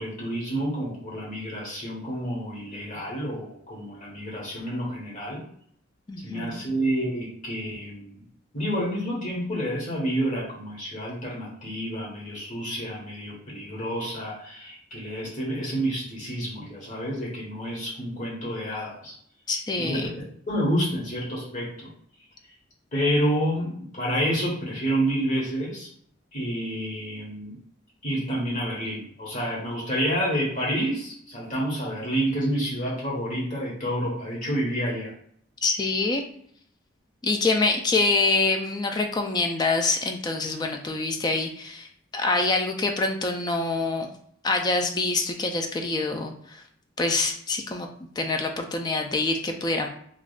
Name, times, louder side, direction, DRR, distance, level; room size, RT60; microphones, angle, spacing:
voice 1, 0.0-5.4 6.2-8.1 8.5-19.1 19.8-21.9 22.9-25.9 26.3-27.6 28.0-35.1, equal, 45° left, -5 dB, 1.3 m, -29 dB
voice 2, 6.1-6.7 19.5-20.1 35.6-36.2 37.2-44.1 44.4-46.6 47.0-47.9 48.2-49.9, left 3 dB, 20° left, 4 dB, 0.3 m, -25 dB
3.4 x 2.4 x 2.3 m, 0.65 s
head